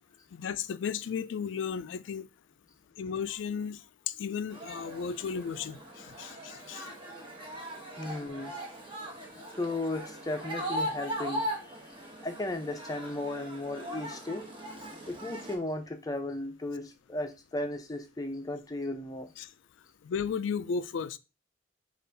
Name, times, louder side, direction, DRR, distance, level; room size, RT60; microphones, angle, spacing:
voice 1, 0.3-2.3 3.0-3.8 4.1-6.9 19.4-19.5 20.0-21.2, left 6 dB, 70° left, 0.3 m, -34 dB
sound 1, 4.5-15.6, equal, 25° right, 0.9 m, -39 dB
voice 2, 8.0-8.5 9.5-11.8 12.2-14.4 15.1-19.3, left 2 dB, 20° left, 0.5 m, -35 dB
5.4 x 2.5 x 3.3 m
head